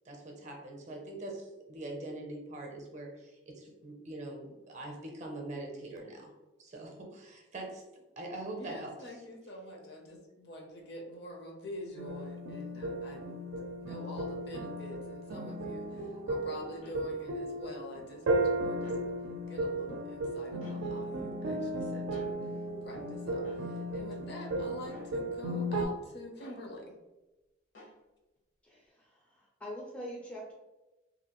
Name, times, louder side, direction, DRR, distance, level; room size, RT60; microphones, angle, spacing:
voice 1, 0.0-6.3 6.6-7.8 8.2-9.0, right 2 dB, 40° right, 1 dB, 0.6 m, -43 dB
voice 2, 8.5-13.5 13.8-18.2 18.6-18.9 19.5-22.3 22.8-26.9, left 1 dB, 60° left, 1 dB, 0.6 m, -46 dB
sound 1, 12.0-25.9, right 1 dB, 90° right, 0.4 m, -35 dB
sound 2, 16.8-17.0 18.7-19.0 20.6-20.8 22.1-22.3 23.4-23.6 24.9-25.1 26.4-26.6 27.7-28.0, left 1 dB, 80° left, 1.0 m, -52 dB
voice 3, 28.6-30.5, equal, 5° left, -4 dB, 0.4 m, -44 dB
2.6 x 2.4 x 2.9 m, 1.1 s
head